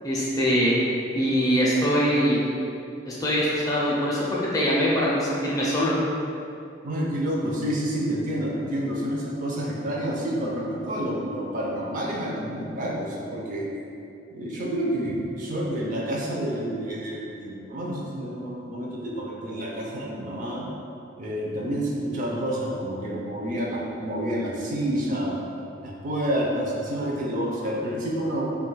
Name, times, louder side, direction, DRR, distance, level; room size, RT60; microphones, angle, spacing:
voice 1, 0.0-0.8 1.1-2.4 3.1-5.9, equal, 20° left, -6 dB, 0.4 m, -23 dB
voice 2, 6.8-13.7 14.3-20.6 21.2-25.4 25.8-28.4, right 1 dB, 45° right, -3 dB, 0.4 m, -29 dB
2.3 x 2.2 x 3.8 m, 2.6 s
head